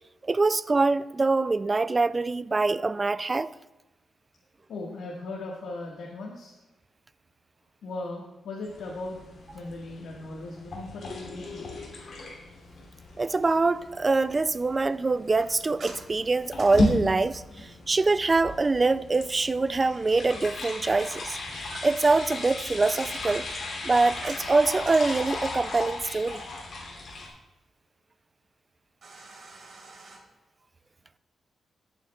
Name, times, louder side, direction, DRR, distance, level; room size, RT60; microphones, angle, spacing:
voice 1, 0.2-3.5 13.2-21.4 21.8-23.4 23.8-26.4, right 3 dB, 25° right, 0.3 m, -24 dB
voice 2, 4.7-6.6 7.8-11.7, left 2 dB, 85° left, 1.6 m, -38 dB
sound 1, 8.6-27.3, left 2 dB, 55° left, 2.9 m, -35 dB
sound 2, 15.4-17.6 21.0-22.2 22.7-25.7 29.0-30.2, right 3 dB, 55° right, 3.4 m, -46 dB
17.5 x 8.4 x 2.3 m
wide cardioid pair, 130°, 0 cm